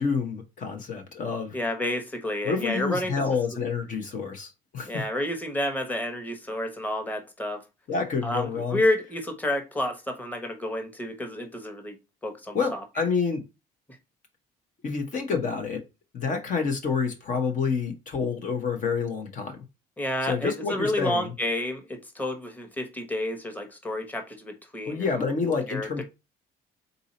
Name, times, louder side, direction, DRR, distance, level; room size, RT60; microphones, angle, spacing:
voice 1, 0.0-1.5 2.4-4.9 7.9-8.8 12.5-13.4 14.8-15.8 16.1-19.6 20.3-21.3 24.9-26.0, left 5 dB, 50° left, 1.0 m, -28 dB
voice 2, 1.5-3.2 4.9-7.6 8.2-11.9 12.2-12.8 20.0-25.3 25.7-26.0, left 1 dB, 10° left, 1.2 m, -30 dB
4.0 x 2.7 x 4.1 m
cardioid pair, 110°, 17 cm